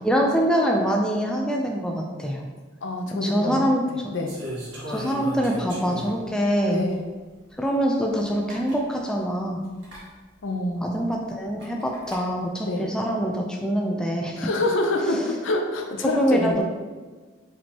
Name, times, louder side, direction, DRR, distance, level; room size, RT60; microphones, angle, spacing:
voice 1, 0.0-2.4 3.2-3.8 4.9-6.8 7.6-9.6 10.8-14.5 15.1-15.3 16.1-16.6, equal, 5° left, -1 dB, 0.4 m, -24 dB
voice 2, 2.8-3.8 4.1-4.4 6.7-7.0 10.4-11.1 12.6-12.9 14.4-16.6, left 2 dB, 75° left, 3 dB, 0.6 m, -26 dB
sound 1, 4.3-6.3 6.9-7.0 8.2-8.3 8.5-8.8 9.8-10.0 11.6-12.2, equal, 65° right, 1.5 m, -36 dB
5.1 x 3.6 x 2.9 m, 1.4 s
head